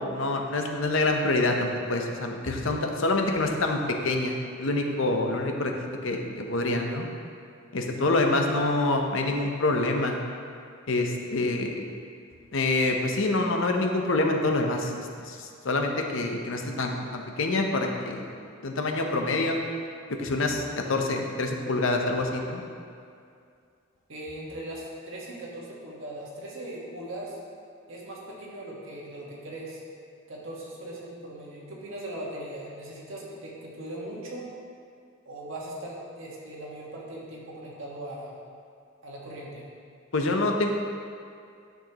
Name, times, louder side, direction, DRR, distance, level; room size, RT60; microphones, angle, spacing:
voice 1, 0.0-5.7 6.0-7.0 7.7-10.2 10.9-11.8 12.5-18.2 18.6-19.6 20.1-22.6 40.1-40.7, left 2 dB, 70° left, 3 dB, 0.8 m, -26 dB
voice 2, 24.1-27.4 27.9-29.8 30.3-34.4 35.3-38.4 39.0-39.6, right 1 dB, 75° right, -4 dB, 1.6 m, -39 dB
10.5 x 6.4 x 3.0 m, 2.3 s
head